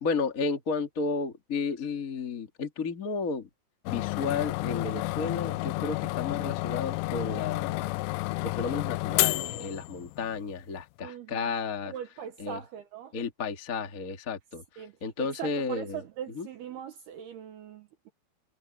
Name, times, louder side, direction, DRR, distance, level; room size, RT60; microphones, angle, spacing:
voice 1, 0.0-3.5 3.9-7.9 8.4-11.9 12.4-12.6 13.1-14.6 15.0-16.0 16.3-16.5, left 4 dB, 65° left, 0.8 m, -32 dB
sound 1, 3.9-10.4, left 23 dB, 90° left, 2.7 m, -31 dB
voice 2, 11.0-11.5 11.9-13.1 14.8-14.9 15.2-18.1, right 9 dB, 70° right, 2.6 m, -40 dB
omnidirectional pair, 6.0 m